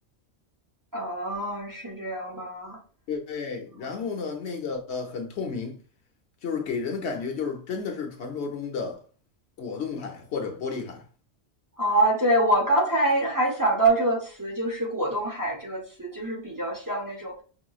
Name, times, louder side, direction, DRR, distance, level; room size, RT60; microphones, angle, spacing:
voice 1, 0.9-2.8 3.8-3.9 11.8-17.4, right 1 dB, 20° right, 0.9 m, -25 dB
voice 2, 3.1-5.8 6.4-9.0 9.6-11.0, left 5 dB, 70° left, 1.0 m, -32 dB
5.5 x 3.0 x 2.3 m
omnidirectional pair, 1.2 m